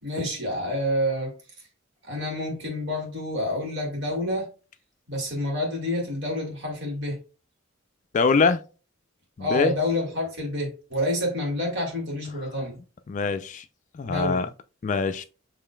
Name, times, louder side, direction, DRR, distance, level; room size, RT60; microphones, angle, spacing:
voice 1, 0.0-1.3 2.1-4.5 5.1-7.2 9.4-12.8 14.0-14.4, left 1 dB, 60° right, 2.1 m, -28 dB
voice 2, 8.1-8.6 9.4-9.8 13.1-13.6 13.9-14.5 14.8-15.2, left 4 dB, 35° left, 0.3 m, -23 dB
6.7 x 3.1 x 2.2 m
head